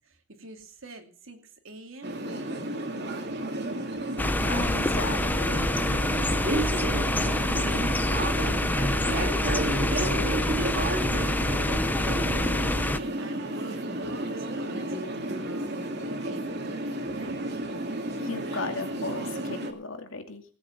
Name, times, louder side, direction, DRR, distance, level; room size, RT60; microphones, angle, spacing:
voice 1, 0.0-2.6 2.9-3.5 6.6-12.6 13.2-17.4, right 2 dB, 85° right, 5 dB, 2.7 m, -46 dB
sound 1, 2.0-19.7, right 1 dB, 55° right, 2.2 m, -32 dB
sound 2, 4.2-13.0, left 1 dB, 10° left, 0.6 m, -26 dB
voice 2, 4.4-5.6 18.2-20.4, left 3 dB, 85° left, 5 dB, 2.4 m, -35 dB
18.0 x 8.2 x 5.9 m, 0.43 s
head